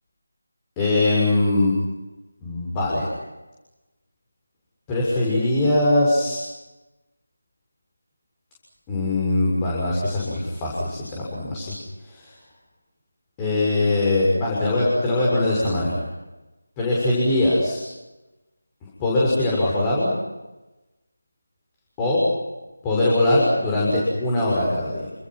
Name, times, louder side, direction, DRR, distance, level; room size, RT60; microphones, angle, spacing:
voice 1, 0.8-1.8 2.4-3.1 4.9-6.4 8.9-11.7 12.1-12.3 13.4-16.0 16.8-17.8 19.0-20.1 22.0-22.2 22.8-25.1, left 2 dB, 15° left, -5 dB, 6.8 m, -21 dB
30.0 x 27.5 x 6.1 m, 1.1 s
figure-of-eight pair, 165°, 0 cm